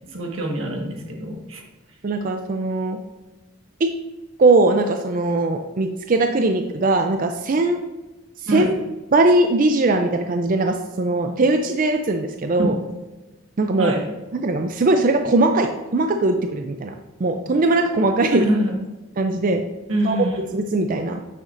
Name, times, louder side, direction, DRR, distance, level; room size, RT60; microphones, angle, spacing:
voice 1, 0.1-1.6 8.5-8.7 12.6-12.7 13.8-14.0 18.3-18.7 19.9-20.5, right 1 dB, 90° right, 1 dB, 1.5 m, -24 dB
voice 2, 2.0-3.0 3.8-3.9 4.4-7.8 8.5-8.7 9.1-12.8 13.6-13.9 14.3-16.9 17.2-18.5 19.2-19.6 20.0-20.2 20.5-21.2, right 2 dB, 40° right, 5 dB, 0.4 m, -20 dB
9.0 x 6.4 x 2.6 m, 1.1 s
head